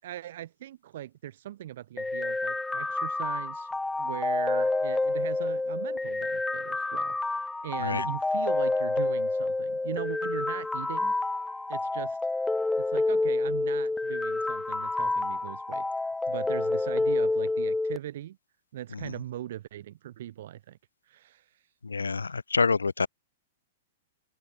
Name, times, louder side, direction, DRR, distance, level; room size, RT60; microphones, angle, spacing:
voice 1, 0.0-3.7 4.0-11.1 11.7-12.2 12.8-15.8 16.3-18.4 18.7-20.8 21.1-21.4, right 12 dB, 60° right, 7.1 m, -40 dB
sound 1, 2.0-18.0, left 2 dB, 5° left, 1.9 m, -28 dB
voice 2, 21.8-23.1, left 4 dB, 80° left, 0.7 m, -27 dB
open air
figure-of-eight pair, 105°, 0 cm